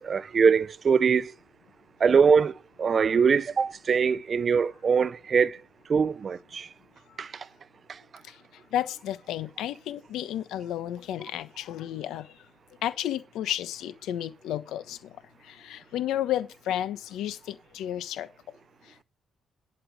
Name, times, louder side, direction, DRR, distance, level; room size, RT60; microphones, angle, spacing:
voice 1, 0.0-1.3 2.0-5.6 5.9-6.7 7.2-7.4 7.9-8.0, right 6 dB, 45° right, 0.6 m, -23 dB
voice 2, 8.7-12.3 12.8-15.0 15.5-18.3, left 11 dB, 85° left, 1.2 m, -32 dB
11.5 x 5.9 x 6.5 m
cardioid pair, 90°, 0 cm